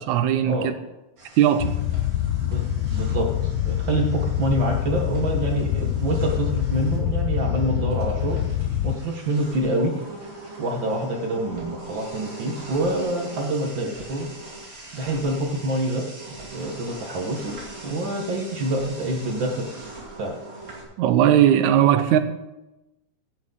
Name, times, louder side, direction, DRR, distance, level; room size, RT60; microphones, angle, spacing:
voice 1, 0.1-0.7 1.4-1.7 21.0-22.2, right 10 dB, 80° right, 2.1 m, -18 dB
sound 1, 1.2-20.8, right 2 dB, 40° right, 3.4 m, -42 dB
sound 2, 1.6-9.0, left 11 dB, 85° left, 2.0 m, -25 dB
voice 2, 2.4-8.4 8.8-9.9 10.6-14.3 14.9-16.0 16.5-19.7 20.2-20.3, right 1 dB, 55° right, 1.4 m, -26 dB
16.5 x 8.2 x 3.8 m
omnidirectional pair, 3.5 m